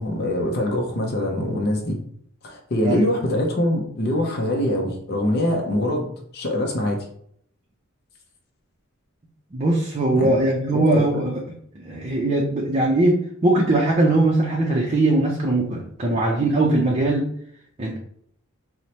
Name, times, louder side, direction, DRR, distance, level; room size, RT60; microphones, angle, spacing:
voice 1, 0.0-2.0 2.4-6.1 6.3-7.1 10.2-10.4 10.7-10.9, left 1 dB, 45° left, 0 dB, 0.6 m, -23 dB
voice 2, 9.5-11.4 11.7-17.2 17.8-18.0, right 2 dB, 30° right, -2 dB, 0.5 m, -20 dB
4.4 x 2.1 x 2.8 m, 0.67 s
head